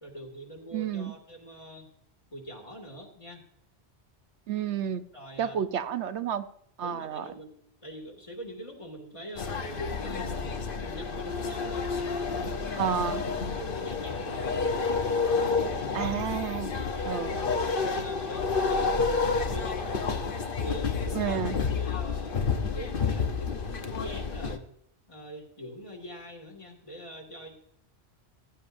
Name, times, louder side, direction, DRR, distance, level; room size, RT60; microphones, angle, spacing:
voice 1, 0.0-1.9 2.3-3.4 5.1-5.6 6.8-7.5 7.8-11.9 12.2-13.0 13.6-14.7 15.7-16.4 16.9-20.2 20.6-22.4 22.7-24.7 25.1-27.6, equal, 30° left, 2 dB, 2.3 m, -44 dB
voice 2, 0.7-1.2 4.5-5.0 5.4-6.5 6.8-7.3 12.8-13.2 15.9-16.8 17.0-17.4 21.1-21.6, right 9 dB, 85° right, 10 dB, 1.0 m, -30 dB
sound 1, 9.4-24.6, left 4 dB, 55° left, 1.1 m, -30 dB
15.5 x 12.5 x 2.6 m, 0.71 s
omnidirectional pair, 1.1 m